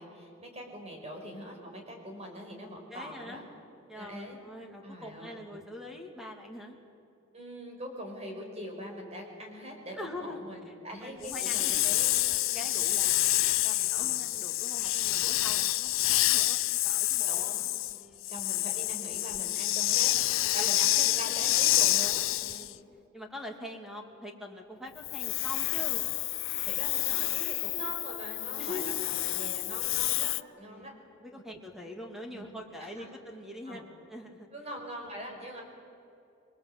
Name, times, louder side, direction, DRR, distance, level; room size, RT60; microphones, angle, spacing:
voice 1, 0.0-3.5 3.9-4.4 4.8-5.4 7.3-13.0 14.0-14.2 17.3-17.6 18.3-20.1 20.5-22.6 26.6-30.9 32.3-32.5 32.8-33.1 33.7-33.8 34.5-35.6, equal, 30° right, 1 dB, 5.4 m, -43 dB
voice 2, 2.9-3.4 3.9-6.8 10.0-11.7 12.5-17.6 17.9-18.2 20.6-20.7 21.1-21.6 22.4-22.8 23.1-26.1 28.6-29.1 30.6-30.9 31.2-33.8 34.1-34.5, left 1 dB, ahead, 2 dB, 2.6 m, -44 dB
Hiss, 11.2-22.7 25.0-30.4, left 17 dB, 70° left, 0.5 m, -28 dB
27.5 x 22.5 x 8.0 m, 2.7 s
head